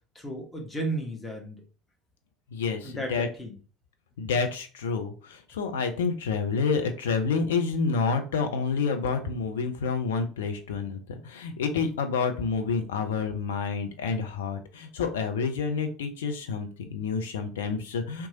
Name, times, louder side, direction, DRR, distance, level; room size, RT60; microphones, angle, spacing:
voice 1, 0.1-1.6 2.8-3.6, right 1 dB, 20° left, 1 dB, 1.1 m, -34 dB
voice 2, 2.5-3.3 4.2-18.3, left 5 dB, 75° left, 7 dB, 0.5 m, -29 dB
2.9 x 2.3 x 2.8 m, 0.36 s
figure-of-eight pair, 65°, 0 cm